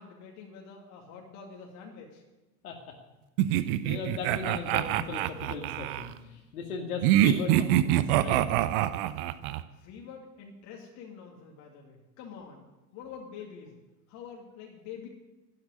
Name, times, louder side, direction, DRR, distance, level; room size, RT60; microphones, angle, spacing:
voice 1, 0.0-2.2 9.7-12.7 12.9-13.8 14.1-15.1, left 6 dB, 35° left, 0 dB, 2.4 m, -46 dB
voice 2, 2.6-3.0 3.5-8.4, left 4 dB, 60° left, 2 dB, 2.2 m, -37 dB
sound 1, 3.4-6.1 7.0-9.6, right 13 dB, 35° right, 0.7 m, -25 dB
12.5 x 9.8 x 9.8 m, 1.1 s
figure-of-eight pair, 90°, 49 cm